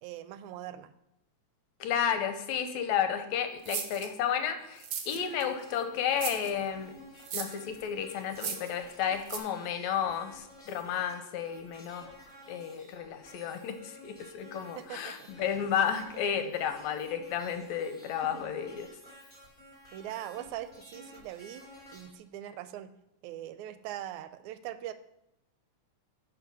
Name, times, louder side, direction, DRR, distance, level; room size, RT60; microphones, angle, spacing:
voice 1, 0.0-0.9 14.8-15.3 15.6-15.7 18.3-18.5 19.9-21.6 21.9-22.9 23.2-24.9, right 12 dB, 85° right, 12 dB, 1.9 m, -41 dB
voice 2, 1.8-7.0 7.3-12.1 12.5-18.9, left 8 dB, 80° left, 8 dB, 1.9 m, -32 dB
sound 1, 3.7-4.1 4.8-5.4 6.2-6.5 7.2-7.6 8.3-8.7 9.3-9.4, right 7 dB, 65° right, 1.6 m, -36 dB
sound 2, 5.2-22.1, left 1 dB, 20° left, 2.6 m, -53 dB
10.5 x 4.4 x 5.4 m, 0.86 s
omnidirectional pair, 3.4 m